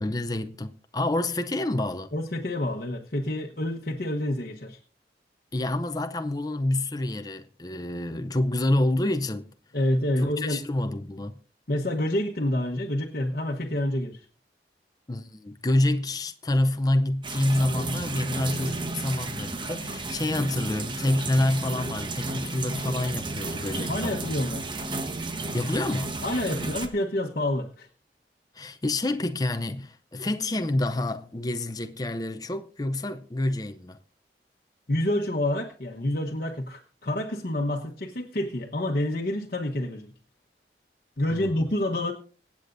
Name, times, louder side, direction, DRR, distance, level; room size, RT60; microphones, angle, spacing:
voice 1, 0.0-2.1 5.5-9.5 10.2-11.3 15.1-24.2 25.5-26.1 28.5-34.0 41.3-41.7, left 1 dB, 20° left, 0.6 m, -27 dB
voice 2, 2.1-4.8 9.7-10.6 11.7-14.2 23.9-24.7 26.2-27.9 34.9-40.1 41.2-42.1, left 1 dB, 55° left, 1.2 m, -28 dB
sound 1, 17.2-26.9, right 2 dB, 25° right, 1.2 m, -33 dB
25.0 x 8.4 x 2.6 m
head